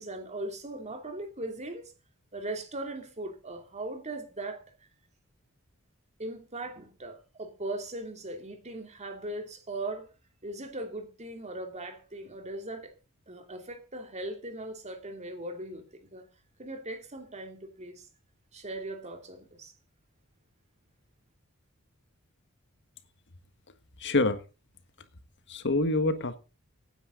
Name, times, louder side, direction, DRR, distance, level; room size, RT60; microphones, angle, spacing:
voice 1, 0.0-1.9 2.3-4.6 6.2-10.1 10.4-12.9 13.3-16.2 16.6-18.1 18.5-19.7, right 2 dB, 30° right, 2.9 m, -39 dB
voice 2, 24.0-24.4 25.5-26.4, left 2 dB, 55° left, 1.6 m, -26 dB
17.0 x 9.8 x 3.9 m
head